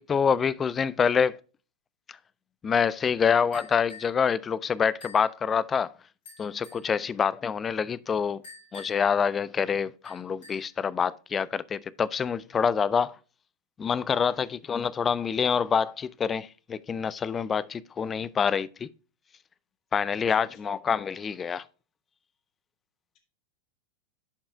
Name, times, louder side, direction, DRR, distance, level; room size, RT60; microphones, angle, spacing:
voice 1, 0.0-1.4 2.1-2.2 2.6-5.9 6.4-8.4 8.7-13.2 13.8-18.9 19.9-21.6, left 6 dB, 20° left, 0.3 m, -26 dB
sound 1, 3.5-4.2 5.0-5.3 6.2-6.9 8.4-9.1 10.0-10.8, left 4 dB, 60° left, 4.0 m, -48 dB
voice 2, 20.2-20.8, left 4 dB, 40° left, 1.5 m, -51 dB
11.5 x 5.4 x 2.2 m
figure-of-eight pair, 90°, 0 cm